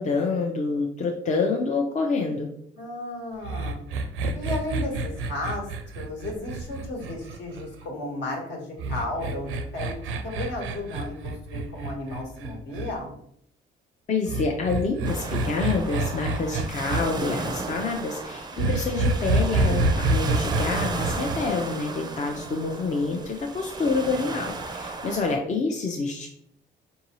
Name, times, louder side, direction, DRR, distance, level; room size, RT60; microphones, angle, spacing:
voice 1, 0.0-2.5 14.1-26.3, left 4 dB, 40° left, 1 dB, 0.5 m, -27 dB
voice 2, 2.8-3.8 4.3-5.7 5.9-13.1, left 1 dB, 65° left, -1 dB, 1.3 m, -34 dB
sound 1, 3.4-7.9 8.8-12.9 14.3-17.0 18.6-21.4, right 2 dB, 90° right, 0.5 m, -27 dB
sound 2, 15.0-25.4, right 3 dB, 20° right, 0.4 m, -34 dB
4.6 x 2.7 x 2.9 m, 0.70 s
cardioid pair, 90°, 20 cm